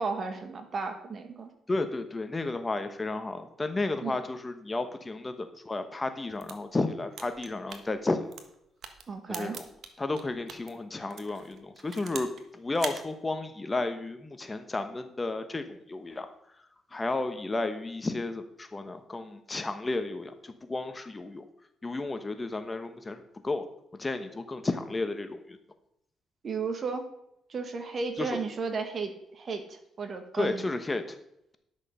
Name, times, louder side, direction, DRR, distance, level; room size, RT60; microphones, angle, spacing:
voice 1, 0.0-1.5 4.0-4.2 9.1-9.6 26.4-27.0 27.5-30.7, right 4 dB, 45° right, 6 dB, 1.8 m, -34 dB
voice 2, 1.7-8.3 9.3-9.7 10.0-12.3 12.5-16.3 16.9-21.4 21.8-23.6 24.0-25.6 28.2-28.4 30.3-31.2, left 2 dB, 20° left, 9 dB, 1.0 m, -32 dB
sound 1, 6.2-10.7 11.1-12.4 12.7-13.0, right 6 dB, 65° right, 1.4 m, -42 dB
10.5 x 6.5 x 5.5 m, 0.77 s
cardioid pair, 90°, 0 cm